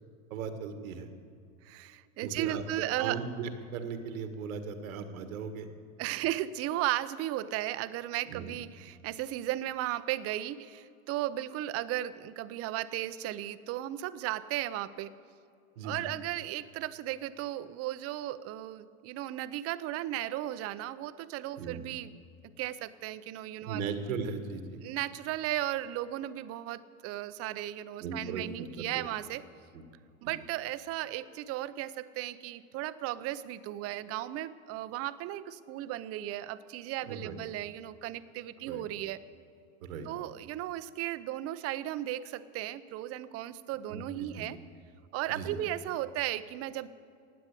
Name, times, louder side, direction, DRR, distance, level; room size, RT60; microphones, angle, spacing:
voice 1, 0.3-1.1 2.2-2.6 3.0-5.7 8.3-8.5 15.8-16.0 21.6-21.8 23.7-24.8 28.0-28.4 28.8-29.1 29.7-29.8 30.2-30.3 37.1-37.4 38.7-38.8 39.8-40.1 43.9-44.5 45.3-45.6, right 5 dB, 85° right, 8 dB, 1.8 m, -37 dB
voice 2, 1.6-3.2 6.0-15.1 15.8-22.1 22.6-23.8 24.8-29.4 30.2-39.3 40.0-44.6 45.1-46.9, right 14 dB, 35° right, 14 dB, 0.6 m, -35 dB
16.0 x 9.6 x 8.3 m, 2.4 s
supercardioid pair, 130°, 40 cm